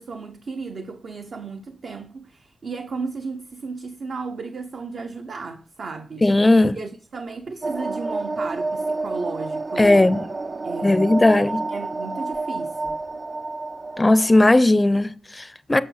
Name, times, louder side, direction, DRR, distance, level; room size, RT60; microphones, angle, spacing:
voice 1, 0.0-6.2 6.7-10.1 10.6-11.0 11.3-13.0, right 4 dB, 65° right, 0.8 m, -34 dB
voice 2, 6.2-6.8 9.8-10.3 10.8-11.6 14.0-15.8, left 2 dB, 20° left, 0.5 m, -17 dB
sound 1, 7.6-14.6, right 3 dB, 35° right, 0.3 m, -29 dB
8.7 x 6.3 x 5.6 m
wide cardioid pair, 125°, 0 cm